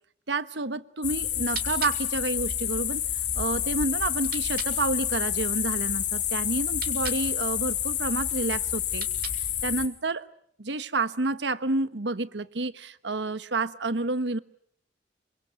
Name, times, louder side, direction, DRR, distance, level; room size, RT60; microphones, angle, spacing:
voice 1, 0.3-3.0 3.3-9.1 9.6-10.2 10.6-14.4, right 3 dB, 85° right, 14 dB, 1.3 m, -29 dB
sound 1, 1.0-9.9, left 10 dB, 85° left, 3.5 m, -29 dB
sound 2, 1.4-4.8 6.6-7.3 8.8-9.6, right 8 dB, 55° right, 3.1 m, -42 dB
27.5 x 24.5 x 8.3 m, 0.66 s
head